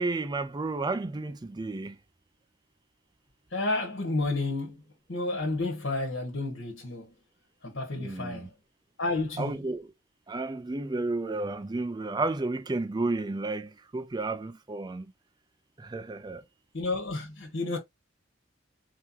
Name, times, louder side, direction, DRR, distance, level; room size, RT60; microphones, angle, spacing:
voice 1, 0.0-2.0 7.9-8.5 9.4-9.9 10.3-15.1 15.8-16.4, right 3 dB, 20° right, 0.4 m, -32 dB
voice 2, 3.5-4.8 5.1-7.1 7.6-8.5 9.0-9.6 16.7-17.8, left 2 dB, 70° left, 1.7 m, -31 dB
4.8 x 3.4 x 2.8 m
head